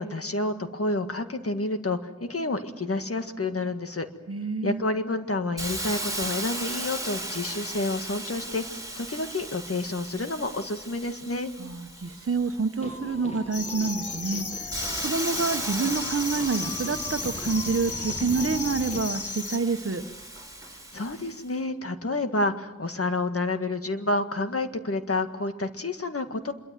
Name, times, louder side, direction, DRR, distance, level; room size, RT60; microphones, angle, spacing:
voice 1, 0.0-4.1 4.6-8.6 9.0-11.5 20.7-26.5, left 2 dB, 50° left, 7 dB, 1.8 m, -29 dB
voice 2, 4.3-4.9 11.6-14.7 15.0-20.0, right 4 dB, 50° right, 8 dB, 1.4 m, -28 dB
Hiss, 5.6-13.1 13.7-21.4, right 1 dB, 10° right, 4.5 m, -37 dB
sound 1, 12.8-19.0, left 1 dB, 20° left, 2.0 m, -40 dB
sound 2, 13.5-19.6, left 4 dB, 80° left, 1.8 m, -35 dB
26.0 x 23.0 x 7.7 m, 1.1 s
wide cardioid pair, 75°, 29 cm